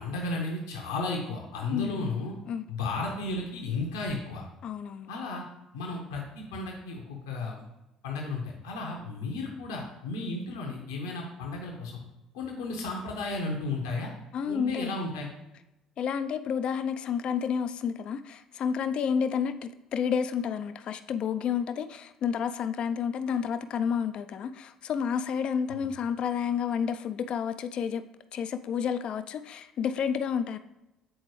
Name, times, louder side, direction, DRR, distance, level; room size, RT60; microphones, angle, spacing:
voice 1, 0.0-2.3 2.7-4.5 5.1-5.4 5.7-7.6 8.0-12.0 12.3-14.1 14.5-15.3 25.7-25.8, left 3 dB, 70° left, 0 dB, 0.9 m, -34 dB
voice 2, 1.7-2.1 2.5-2.6 4.6-5.1 14.3-14.9 16.0-28.0 28.3-30.6, left 7 dB, 45° left, 10 dB, 0.3 m, -30 dB
7.7 x 4.3 x 3.1 m, 0.94 s
figure-of-eight pair, 55°, 2 cm